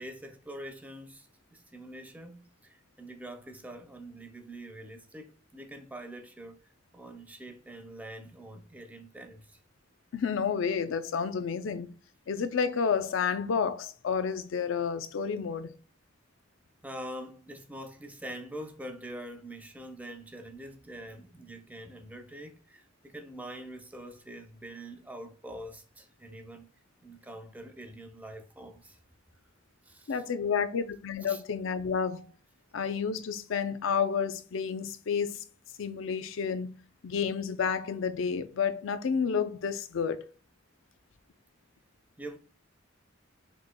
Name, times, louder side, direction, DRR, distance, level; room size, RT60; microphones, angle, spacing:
voice 1, 0.0-9.6 16.8-26.7 27.0-29.0 29.8-30.2 31.2-31.4 42.2-42.4, right 1 dB, 10° right, 0.5 m, -44 dB
voice 2, 10.1-11.9 12.3-15.8 30.1-32.3 32.7-35.4 35.8-36.8 37.0-40.3, left 6 dB, 80° left, 0.4 m, -30 dB
6.0 x 3.2 x 2.2 m
head